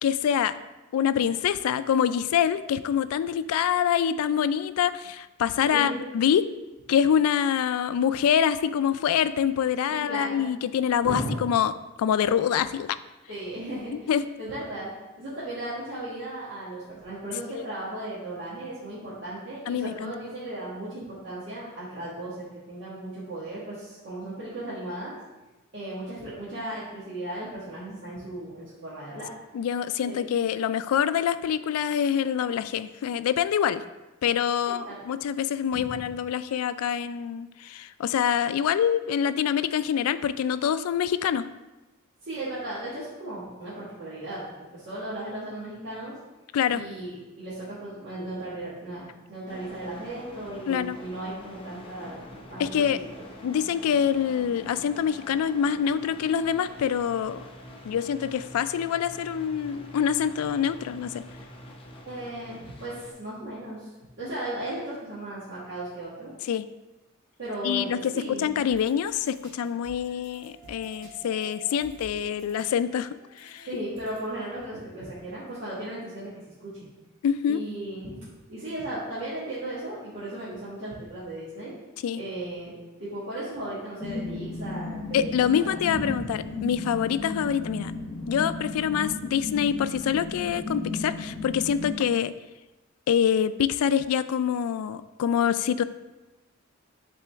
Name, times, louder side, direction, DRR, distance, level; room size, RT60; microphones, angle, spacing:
voice 1, 0.0-0.5 0.9-6.4 6.9-11.7 12.0-13.0 14.1-14.2 17.5-17.6 19.7-20.1 29.5-33.8 34.2-41.4 46.5-46.8 50.7-51.0 52.6-53.0 53.4-57.4 57.9-61.2 66.5-66.7 67.6-68.1 68.4-73.1 73.4-73.7 77.2-77.6 82.0-82.2 85.1-87.9 88.3-92.3 93.1-95.8, left 8 dB, 90° left, 15 dB, 0.3 m, -25 dB
voice 2, 5.7-6.1 9.9-10.4 11.0-11.4 13.3-14.1 14.4-14.9 15.2-25.1 25.7-29.3 30.0-30.3 34.8-34.9 35.7-35.9 42.2-46.1 46.7-52.8 62.0-66.3 67.4-68.5 73.7-76.7 77.5-81.7 82.2-86.3, right 1 dB, 55° right, -11 dB, 1.6 m, -36 dB
sound 1, 49.5-63.1, equal, 25° left, 0.6 m, -45 dB
sound 2, 68.7-74.5, right 1 dB, 40° right, 1.7 m, -51 dB
sound 3, 84.0-91.9, left 2 dB, 70° left, 0.8 m, -34 dB
7.5 x 3.8 x 3.4 m, 1.1 s
head